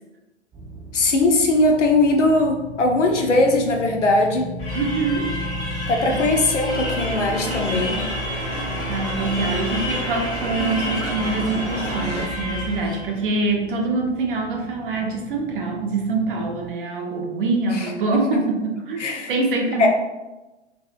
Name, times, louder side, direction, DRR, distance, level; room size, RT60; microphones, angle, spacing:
sound 1, 0.5-16.7, right 1 dB, 20° right, 1.0 m, -37 dB
voice 1, 0.9-4.5 5.9-8.0 17.7-18.5 19.0-19.3 19.8-19.9, left 2 dB, 80° left, 2 dB, 0.6 m, -20 dB
sound 2, 4.6-13.2, left 1 dB, 20° left, 0.6 m, -30 dB
voice 2, 4.7-5.4 6.1-6.3 8.9-19.9, right 3 dB, 45° right, 2 dB, 0.6 m, -25 dB
sound 3, 6.7-12.3, right 1 dB, 85° right, 0.6 m, -31 dB
2.7 x 2.6 x 2.4 m, 1.1 s
figure-of-eight pair, 115°, 35 cm